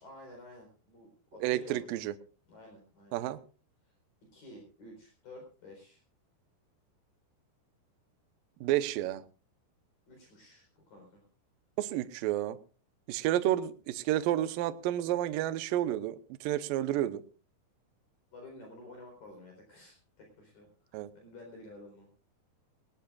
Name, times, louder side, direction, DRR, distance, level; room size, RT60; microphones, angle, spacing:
voice 1, 0.0-1.9 2.5-3.2 3.9-4.0 4.2-6.0 10.1-11.2 15.1-15.4 18.3-22.1, left 2 dB, 50° left, 5.7 m, -52 dB
voice 2, 1.4-2.1 3.1-3.4 8.6-9.2 11.8-12.6 13.1-17.2 20.9-21.1, right 13 dB, 85° right, 2.0 m, -30 dB
20.0 x 19.0 x 2.4 m
omnidirectional pair, 5.3 m